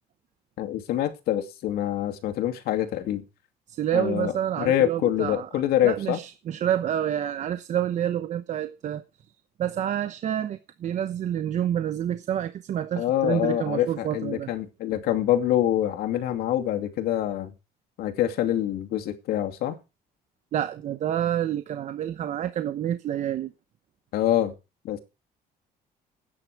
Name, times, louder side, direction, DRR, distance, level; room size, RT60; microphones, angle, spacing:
voice 1, 0.6-3.2 3.9-4.3 4.6-6.2 13.0-17.5 18.0-19.8 24.1-24.5 24.8-25.0, left 12 dB, 80° left, 2.5 m, -25 dB
voice 2, 3.7-5.5 5.8-9.0 9.6-14.5 20.5-23.5, right 10 dB, 50° right, 1.0 m, -28 dB
17.0 x 9.8 x 4.8 m
cardioid pair, 155°, 16 cm